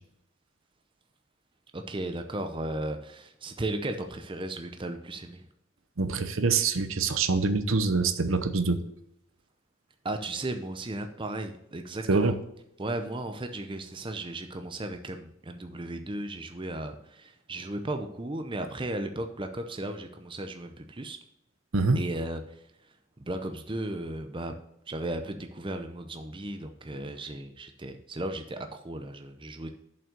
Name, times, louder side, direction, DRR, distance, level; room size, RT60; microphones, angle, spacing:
voice 1, 1.7-5.4 10.0-12.4 12.8-21.2 21.9-22.6 23.2-24.5 24.9-29.7, right 1 dB, 25° right, 6 dB, 0.7 m, -35 dB
voice 2, 6.0-8.8 12.1-12.4 21.7-22.0, right 4 dB, 70° right, 10 dB, 0.8 m, -25 dB
7.3 x 5.6 x 6.7 m, 0.76 s
head